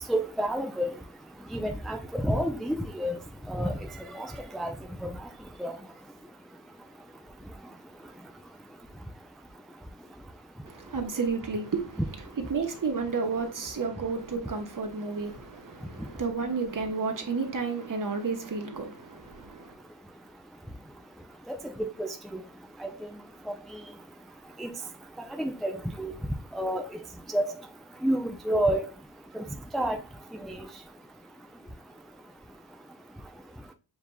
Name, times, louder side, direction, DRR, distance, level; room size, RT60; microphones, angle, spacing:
voice 1, 0.1-0.9 1.5-3.2 3.5-3.7 4.1-4.3 4.5-4.7 5.0-5.1 5.6-5.7 21.8-22.1 22.8-22.9 24.6-24.7 25.4-25.7 26.0-26.1 26.5-26.8 27.3-27.4 28.0-28.8 29.7-30.0 30.4-30.6, right 1 dB, ahead, 0.4 m, -28 dB
voice 2, 10.6-12.0 12.5-19.7, right 4 dB, 45° right, 1.1 m, -31 dB
7.1 x 2.9 x 2.2 m
cardioid pair, 80°, 43 cm